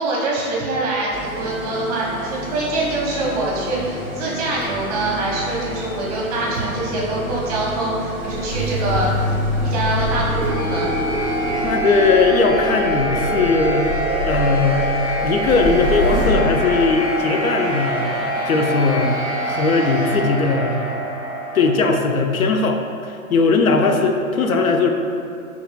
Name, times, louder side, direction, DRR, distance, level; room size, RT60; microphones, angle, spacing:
voice 1, 0.0-11.0, right 2 dB, 30° right, -5 dB, 0.7 m, -24 dB
sound 1, 1.1-11.8, equal, 50° left, 1.2 m, -32 dB
sound 2, 3.6-21.7, right 1 dB, 10° right, 0.4 m, -25 dB
sound 3, 8.2-16.3, right 1 dB, 20° left, 0.8 m, -28 dB
voice 2, 11.6-13.9 14.3-14.9 15.2-18.2 18.4-21.0 21.5-24.9, left 4 dB, 75° left, 4 dB, 0.5 m, -19 dB
5.5 x 3.0 x 2.2 m, 2.5 s
figure-of-eight pair, 120°, 43 cm